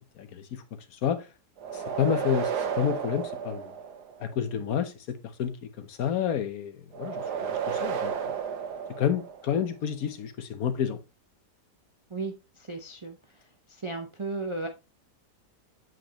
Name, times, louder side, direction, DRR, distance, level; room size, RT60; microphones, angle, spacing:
voice 1, 0.2-0.6 0.9-1.3 1.7-3.7 4.2-8.3 9.0-11.0, left 8 dB, 65° left, 1.2 m, -30 dB
sound 1, 1.6-4.3 6.9-9.7, right 7 dB, 75° right, 1.5 m, -32 dB
voice 2, 12.7-13.2 13.8-14.7, right 3 dB, 50° right, 0.3 m, -34 dB
7.8 x 5.2 x 2.9 m
omnidirectional pair, 1.8 m